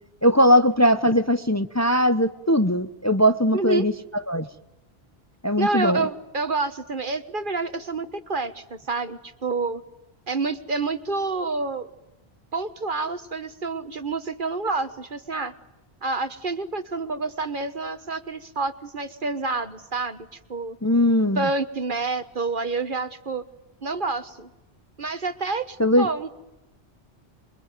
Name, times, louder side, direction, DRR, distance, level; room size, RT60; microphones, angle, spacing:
voice 1, 0.2-3.9 4.3-4.5 5.4-6.0 20.8-21.5 25.8-26.1, equal, 15° left, 0.9 m, -20 dB
voice 2, 3.5-3.9 5.6-9.8 10.3-11.9 12.5-15.5 16.0-20.8 21.3-23.4 23.8-24.5 25.0-26.3, right 3 dB, 50° right, 1.6 m, -28 dB
27.5 x 23.5 x 9.3 m
omnidirectional pair, 1.1 m